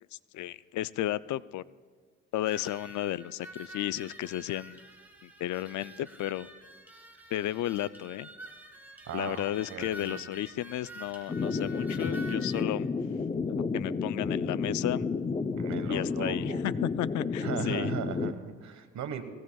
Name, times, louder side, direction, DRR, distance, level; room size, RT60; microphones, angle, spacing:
voice 1, 0.3-1.6 2.3-4.8 5.2-6.5 7.3-8.3 9.1-12.9 13.5-15.1 15.9-17.9, left 14 dB, 70° left, 17 dB, 0.5 m, -33 dB
sound 1, 2.4-12.6, right 1 dB, 5° right, 2.5 m, -48 dB
voice 2, 9.1-10.2 15.6-16.6 17.4-19.2, right 8 dB, 65° right, 9 dB, 1.4 m, -38 dB
sound 2, 11.3-18.3, left 4 dB, 20° left, 0.6 m, -31 dB
21.5 x 17.0 x 2.3 m, 1.5 s
cardioid pair, 90°, 30 cm